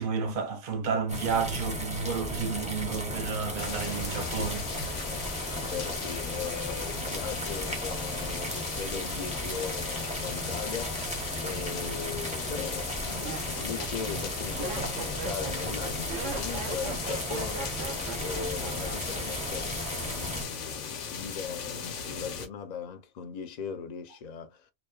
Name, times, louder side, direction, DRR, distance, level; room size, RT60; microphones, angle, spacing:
voice 1, 0.0-4.7, right 5 dB, 55° right, 0.7 m, -31 dB
sound 1, 1.1-20.4, equal, 10° right, 0.6 m, -35 dB
sound 2, 3.6-22.5, left 6 dB, 85° left, 1.0 m, -38 dB
voice 2, 5.1-17.8 18.2-24.7, left 6 dB, 50° left, 0.5 m, -39 dB
Laughter, 12.9-19.5 19.7-20.3, right 5 dB, 80° right, 1.0 m, -39 dB
2.9 x 2.1 x 2.3 m
omnidirectional pair, 1.2 m